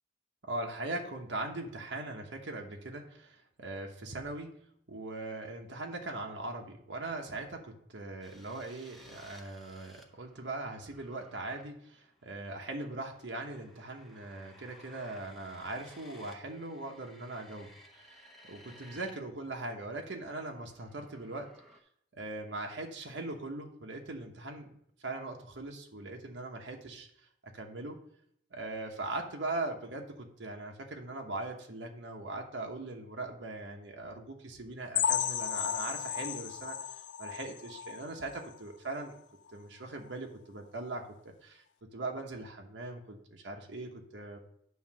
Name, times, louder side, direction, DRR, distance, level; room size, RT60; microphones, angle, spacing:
voice 1, 0.4-4.6 4.9-21.5 22.1-27.1 27.4-28.0 28.5-36.8 37.2-39.2 39.5-41.6 41.9-44.4, right 2 dB, 90° right, 2 dB, 1.1 m, -40 dB
sound 1, 8.2-19.1 19.4-21.8, equal, ahead, 0.8 m, -59 dB
sound 2, 34.9-38.6 39.0-39.1 39.5-39.6 40.1-40.2, left 10 dB, 80° left, 0.3 m, -34 dB
9.4 x 3.2 x 6.0 m, 0.69 s
head